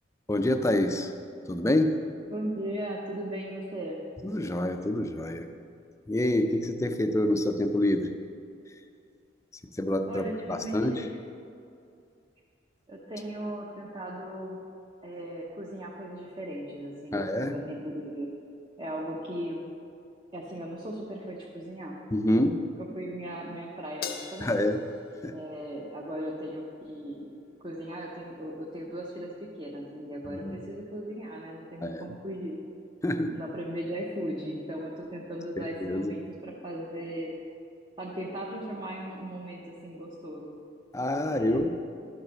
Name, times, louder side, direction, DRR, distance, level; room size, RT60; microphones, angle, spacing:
voice 1, 0.3-1.1 1.5-2.0 4.2-5.6 6.1-8.1 9.8-11.1 17.1-17.6 22.1-22.6 24.4-24.8 25.2-25.4 30.2-30.6 31.8-32.2 33.0-33.3 35.6-36.1 40.9-41.7, left 1 dB, 15° left, 7 dB, 0.4 m, -27 dB
voice 2, 2.3-4.0 10.1-11.1 12.9-14.7 15.0-18.3 18.8-19.6 20.3-22.0 22.4-24.5 25.3-27.3 27.6-29.3 29.6-32.6 33.3-37.3 38.0-40.5 41.2-41.6, right 1 dB, 25° right, -3 dB, 0.8 m, -37 dB
Crash cymbal, 24.0-26.5, left 6 dB, 55° left, 0.7 m, -42 dB
11.5 x 4.9 x 6.4 m, 2.5 s
head